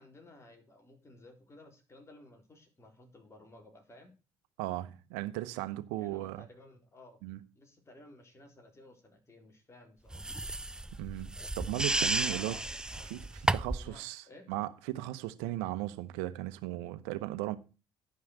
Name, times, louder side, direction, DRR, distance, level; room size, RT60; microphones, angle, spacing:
voice 1, 0.0-4.1 6.0-7.2 7.5-10.2 12.2-13.1 13.8-14.5, left 2 dB, 25° left, 3.8 m, -55 dB
voice 2, 4.6-6.5 7.2-7.4 11.0-12.5 13.1-17.6, right 16 dB, 80° right, 1.0 m, -37 dB
sound 1, 10.1-13.9, right 2 dB, 5° right, 0.5 m, -33 dB
11.0 x 5.6 x 6.5 m
hypercardioid pair, 70°, 11 cm